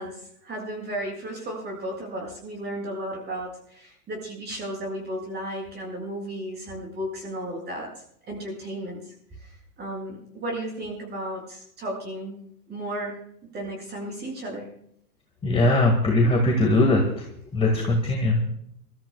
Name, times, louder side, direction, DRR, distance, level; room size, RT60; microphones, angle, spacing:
voice 1, 0.0-7.9 8.3-9.0 9.4-12.4 12.7-13.2 13.5-14.7, right 1 dB, 20° right, -1 dB, 7.7 m, -34 dB
voice 2, 15.4-17.2 17.5-18.5, left 2 dB, 10° left, -1 dB, 2.0 m, -20 dB
27.5 x 13.5 x 2.4 m, 0.72 s
hypercardioid pair, 135°, 48 cm